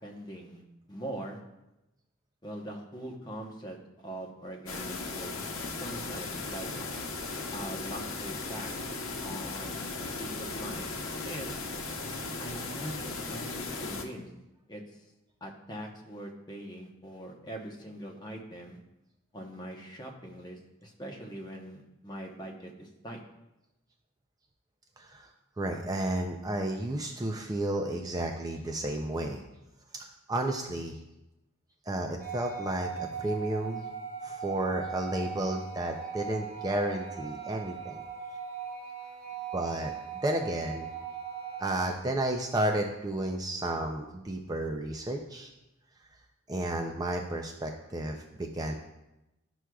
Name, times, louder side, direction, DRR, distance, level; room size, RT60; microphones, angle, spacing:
voice 1, 0.0-0.6 0.9-1.4 2.4-5.4 5.7-6.7 7.5-8.7 9.2-11.0 11.2-11.5 12.4-14.3 14.7-14.8 15.4-18.8 19.3-23.2, right 1 dB, 20° left, 1 dB, 0.9 m, -42 dB
sound 1, 4.7-14.0, left 3 dB, 85° left, 0.9 m, -37 dB
voice 2, 25.0-25.3 25.6-29.4 29.9-31.0 31.9-33.9 34.2-38.0 39.5-39.9 40.2-40.9 41.6-45.5 46.5-48.7, right 1 dB, 20° right, 3 dB, 0.4 m, -32 dB
sound 2, 32.2-41.9, right 6 dB, 50° right, 1.7 m, -39 dB
11.0 x 6.1 x 2.3 m, 0.94 s
head